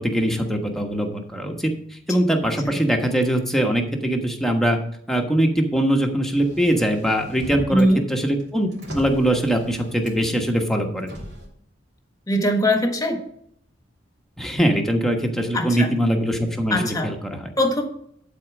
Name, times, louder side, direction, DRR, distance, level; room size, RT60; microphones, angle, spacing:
voice 1, 0.0-4.8 5.1-8.7 8.9-11.1 14.4-17.5, right 1 dB, ahead, 2 dB, 1.2 m, -22 dB
Motor vehicle (road), 6.3-7.9 8.3-10.4 11.0-11.5, equal, 60° right, 3.1 m, -38 dB
voice 2, 7.7-8.0 12.3-13.2 15.5-15.9 16.7-17.1 17.6-17.8, equal, 20° left, 5 dB, 1.4 m, -20 dB
11.5 x 4.3 x 6.0 m, 0.67 s
head